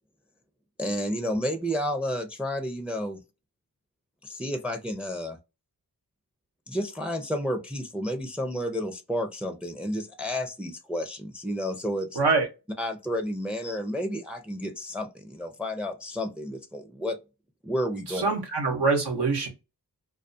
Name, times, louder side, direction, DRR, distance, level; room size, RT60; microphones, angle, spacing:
voice 1, 0.8-3.2 4.2-5.4 6.7-12.2 12.8-17.2 17.6-18.2, equal, 5° right, 0.4 m, -31 dB
voice 2, 12.1-12.5 18.1-19.5, right 4 dB, 80° right, 0.9 m, -24 dB
2.3 x 2.2 x 2.5 m
cardioid pair, 40°, 40 cm